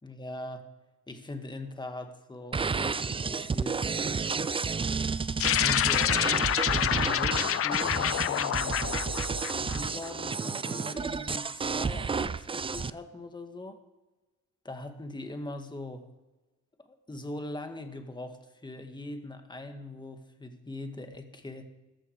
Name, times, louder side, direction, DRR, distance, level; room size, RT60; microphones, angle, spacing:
voice 1, 0.0-0.6 1.1-3.9 5.4-6.2 6.7-8.8 9.6-13.8 14.6-16.1 16.9-21.6, left 1 dB, 15° left, 6 dB, 1.9 m, -41 dB
sound 1, 2.5-12.9, right 5 dB, 20° right, 0.4 m, -31 dB
sound 2, 5.4-10.1, left 11 dB, 50° left, 0.5 m, -27 dB
14.0 x 13.0 x 4.8 m, 1.1 s
cardioid pair, 90°, 30 cm